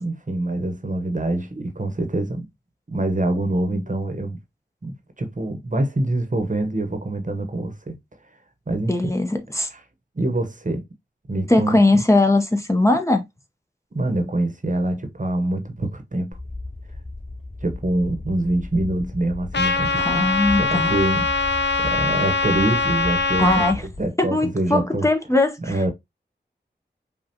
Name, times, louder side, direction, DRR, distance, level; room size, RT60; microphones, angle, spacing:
voice 1, 0.0-2.5 2.9-4.4 4.8-7.9 8.7-9.2 9.7-9.8 10.1-10.9 11.3-12.0 13.9-16.4 17.6-20.3 20.6-25.1 25.6-25.9, right 1 dB, 45° right, 1.0 m, -25 dB
voice 2, 8.9-9.7 11.5-13.2 20.0-20.9 23.4-23.8 24.2-25.7, left 2 dB, 15° left, 0.7 m, -20 dB
sound 1, 16.3-24.1, left 2 dB, 40° left, 2.6 m, -35 dB
Trumpet, 19.5-23.7, left 3 dB, 70° left, 0.5 m, -22 dB
5.3 x 2.3 x 2.8 m
wide cardioid pair, 50°, 19 cm